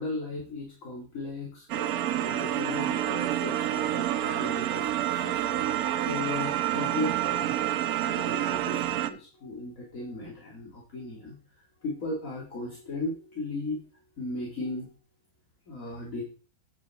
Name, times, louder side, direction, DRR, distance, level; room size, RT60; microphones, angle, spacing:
voice 1, 0.0-1.7 2.1-5.7 6.1-7.5 8.0-11.3 11.8-13.8 14.2-14.9 15.7-16.2, left 2 dB, 55° left, -3 dB, 2.6 m, -36 dB
sound 1, 1.7-9.1, right 12 dB, 75° right, 1.1 m, -28 dB
9.1 x 9.0 x 3.5 m, 0.38 s
omnidirectional pair, 1.7 m